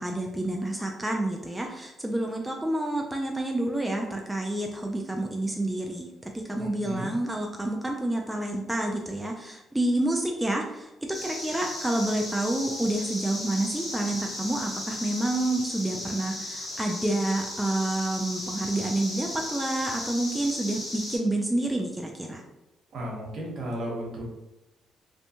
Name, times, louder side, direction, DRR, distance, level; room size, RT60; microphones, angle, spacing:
voice 1, 0.0-22.4, right 1 dB, 10° right, 1 dB, 0.3 m, -29 dB
voice 2, 6.6-7.1 22.9-24.2, equal, 65° right, -2 dB, 0.9 m, -34 dB
sound 1, 11.1-21.2, left 1 dB, 40° left, 1.4 m, -36 dB
2.6 x 2.2 x 2.7 m, 0.92 s
cardioid pair, 90°, 0 cm